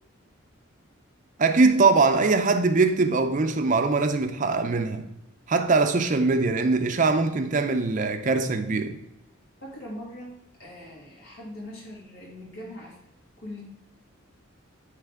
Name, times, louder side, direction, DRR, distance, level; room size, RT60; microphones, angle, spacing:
voice 1, 1.4-5.1 5.5-9.0, right 3 dB, 35° right, 0.4 m, -22 dB
voice 2, 9.6-13.0 13.4-13.6, left 1 dB, 75° left, 2.3 m, -41 dB
9.0 x 3.3 x 3.5 m
head